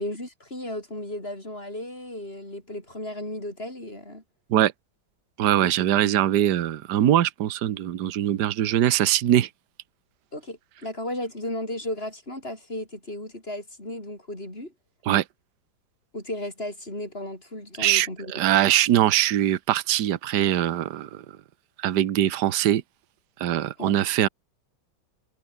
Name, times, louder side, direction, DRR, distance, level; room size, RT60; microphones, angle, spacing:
voice 1, 0.0-4.2 5.6-5.7 10.3-14.7 16.1-18.5 23.8-24.0, left 1 dB, 30° left, 7.7 m, -35 dB
voice 2, 5.4-9.5 15.1-15.2 17.8-21.1 21.8-22.8 23.4-24.3, right 12 dB, 60° right, 1.5 m, -22 dB
omnidirectional pair, 2.2 m